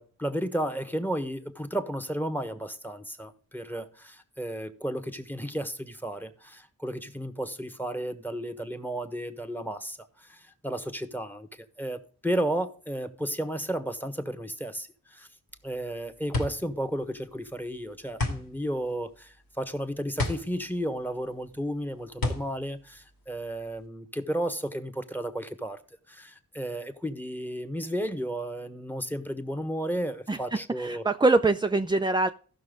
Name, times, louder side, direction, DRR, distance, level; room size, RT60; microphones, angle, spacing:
voice 1, 0.0-15.3 15.6-25.8 26.1-31.0, right 1 dB, 5° left, 1.3 m, -33 dB
sound 1, 15.5-23.9, left 2 dB, 85° left, 2.5 m, -34 dB
voice 2, 30.8-32.3, right 2 dB, 15° right, 0.5 m, -23 dB
15.5 x 6.2 x 3.8 m
wide cardioid pair, 55°, 35 cm